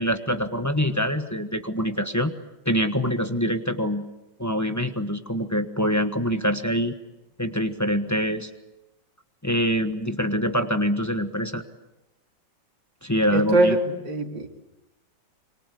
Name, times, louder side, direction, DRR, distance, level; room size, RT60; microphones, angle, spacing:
voice 1, 0.0-2.3 2.6-4.0 4.4-6.9 7.4-8.5 9.4-11.6 13.0-13.8, equal, 10° left, 7 dB, 1.1 m, -25 dB
voice 2, 13.3-14.5, right 2 dB, 85° right, 4 dB, 3.0 m, -22 dB
25.5 x 25.5 x 8.4 m, 0.99 s
omnidirectional pair, 1.9 m